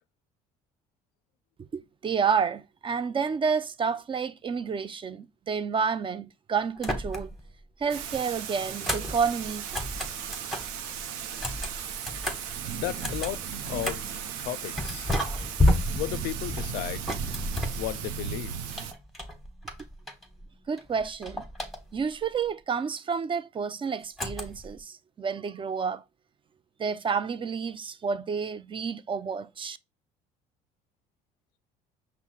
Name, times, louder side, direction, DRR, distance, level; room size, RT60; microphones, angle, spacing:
voice 1, 1.7-7.3 7.8-9.7 20.7-21.5 21.9-26.0 26.8-29.8, right 6 dB, 30° right, 0.4 m, -30 dB
sound 1, 6.8-7.5 7.8-10.8 11.3-14.2 14.8-18.3 18.7-20.5 20.8-22.2 24.2-24.8, left 1 dB, ahead, 1.2 m, -32 dB
Thunder / Rain, 7.9-18.9, right 7 dB, 80° right, 0.6 m, -36 dB
voice 2, 12.8-13.4 13.7-15.1 16.0-17.1 17.8-18.8, left 15 dB, 70° left, 0.4 m, -35 dB
5.5 x 2.0 x 4.4 m
hypercardioid pair, 70°, 18 cm